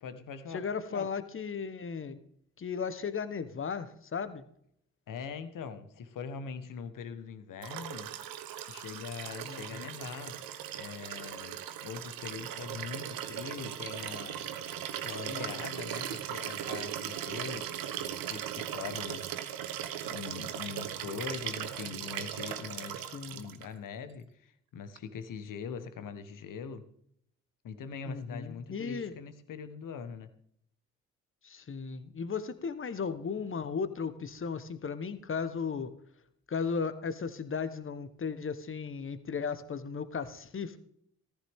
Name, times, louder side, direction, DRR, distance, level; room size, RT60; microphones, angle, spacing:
voice 1, 0.0-0.6 0.9-1.1 5.1-8.1 8.7-10.4 10.8-14.4 15.0-19.6 20.0-23.0 23.3-26.9 27.6-30.3, left 6 dB, 60° left, 10 dB, 1.4 m, -42 dB
voice 2, 0.5-2.2 2.6-4.4 9.4-9.9 15.3-15.6 23.0-23.4 28.0-29.1 31.4-35.9 36.5-40.8, left 5 dB, 35° left, 13 dB, 1.2 m, -36 dB
Liquid, 7.6-23.7 25.0-25.1, right 10 dB, 65° right, 1.1 m, -38 dB
14.5 x 13.5 x 3.6 m, 0.68 s
hypercardioid pair, 45°, 37 cm